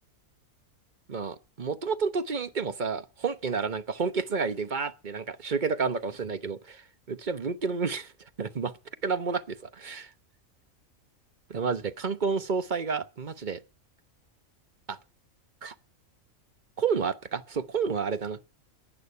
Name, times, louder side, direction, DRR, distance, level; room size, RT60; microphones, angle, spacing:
voice 1, 1.1-6.8 7.1-8.1 8.4-8.7 9.0-10.1 11.5-13.6 14.9-15.0 15.6-15.7 16.8-18.4, right 5 dB, 40° right, 1.1 m, -30 dB
15.0 x 11.0 x 5.6 m
omnidirectional pair, 1.4 m